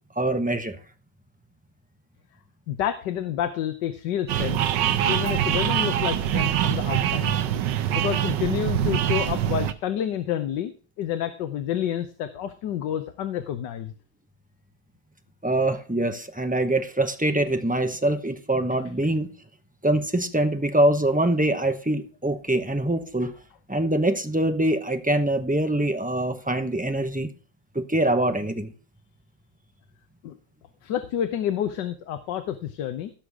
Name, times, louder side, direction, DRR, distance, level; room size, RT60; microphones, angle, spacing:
voice 1, 0.2-0.8 15.4-19.3 19.8-23.3 23.7-27.3 27.7-28.7, right 1 dB, 10° right, 0.5 m, -24 dB
voice 2, 2.7-4.6 5.1-7.3 7.9-10.7 11.0-13.9 30.2-30.3 30.8-33.1, left 10 dB, 75° left, 1.5 m, -29 dB
sound 1, 4.3-9.7, right 11 dB, 80° right, 1.4 m, -24 dB
16.5 x 6.5 x 3.6 m
omnidirectional pair, 1.9 m